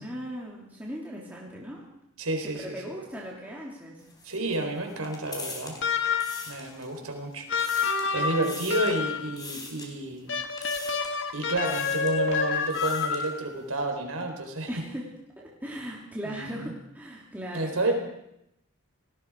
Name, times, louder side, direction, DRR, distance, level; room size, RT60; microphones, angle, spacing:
voice 1, 0.0-1.8 2.4-4.0 8.2-8.9 14.7-17.9, equal, 10° right, -4 dB, 3.3 m, -39 dB
voice 2, 2.2-2.8 4.2-5.7 6.5-7.5 8.1-10.3 11.3-14.7 16.2-16.7 17.5-17.9, right 2 dB, 80° right, 4 dB, 4.2 m, -30 dB
sound 1, 4.0-7.1 7.4-8.1 8.4-9.0 9.4-9.9 10.6-11.2 11.6-12.2 12.5-13.3, left 3 dB, 20° left, 4.1 m, -42 dB
sound 2, 5.8-6.5 7.5-9.3 10.3-13.5, left 5 dB, 55° left, 1.8 m, -28 dB
29.5 x 19.0 x 4.9 m, 0.81 s
head